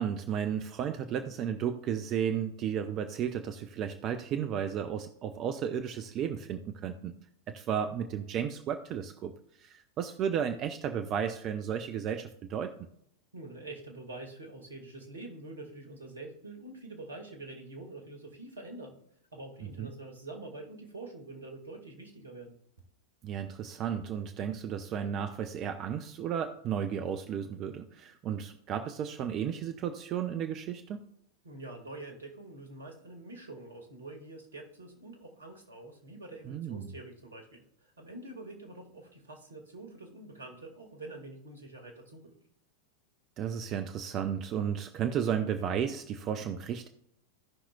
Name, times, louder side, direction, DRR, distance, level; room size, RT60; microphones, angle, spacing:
voice 1, 0.0-7.2 7.5-12.9 19.6-19.9 23.2-31.1 36.5-36.8 43.4-46.9, right 8 dB, 35° right, 0.6 m, -33 dB
voice 2, 13.3-19.0 19.3-22.6 31.4-42.4, right 2 dB, 75° right, 1.9 m, -46 dB
17.0 x 5.8 x 2.3 m
figure-of-eight pair, 90°, 0 cm